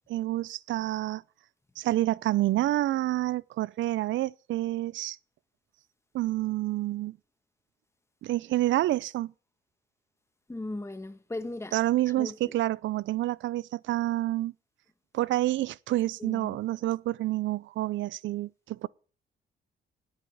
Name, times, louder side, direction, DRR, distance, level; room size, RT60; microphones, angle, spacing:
voice 1, 0.1-1.2 1.8-5.2 6.1-7.2 8.2-9.3 11.7-14.5 15.1-18.9, right 15 dB, 75° right, 0.5 m, -28 dB
voice 2, 10.5-11.8 12.1-12.6 16.2-16.6, left 2 dB, 15° left, 1.5 m, -38 dB
10.0 x 8.6 x 9.5 m
cardioid pair, 90°, 20 cm